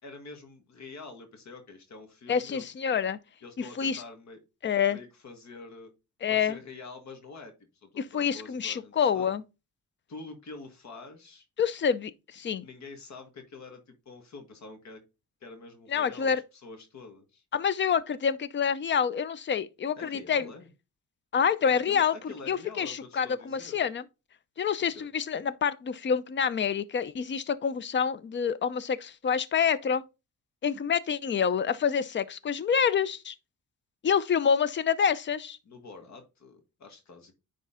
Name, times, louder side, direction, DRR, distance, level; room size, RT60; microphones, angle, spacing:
voice 1, 0.0-2.7 3.4-4.4 4.9-5.9 6.3-7.5 7.8-9.3 10.1-11.4 12.6-15.0 15.4-17.4 20.0-20.7 21.8-23.8 24.9-25.1 35.6-37.3, left 4 dB, 60° left, 1.7 m, -46 dB
voice 2, 2.3-3.2 3.8-4.0 4.6-5.0 6.2-6.6 8.0-9.4 11.6-12.6 15.9-16.4 17.5-20.5 21.3-22.1 22.5-24.0 24.6-30.0 30.6-33.3 34.0-35.6, left 7 dB, 35° left, 0.6 m, -27 dB
9.8 x 3.8 x 3.7 m
cardioid pair, 115°, 31 cm